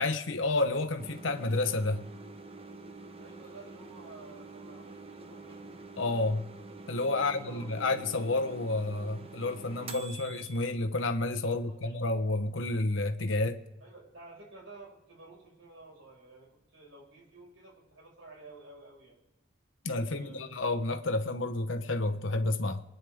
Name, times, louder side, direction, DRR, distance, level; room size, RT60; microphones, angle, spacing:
voice 1, 0.0-2.0 6.0-6.4 6.9-13.6 19.8-22.8, left 2 dB, 80° left, 1.1 m, -30 dB
sound 1, 1.0-10.7, right 3 dB, 30° right, 0.9 m, -47 dB
voice 2, 3.2-5.8 7.2-7.9 11.5-12.0 13.8-19.2 20.0-20.6, right 3 dB, 75° right, 5.5 m, -52 dB
24.0 x 9.5 x 3.6 m
head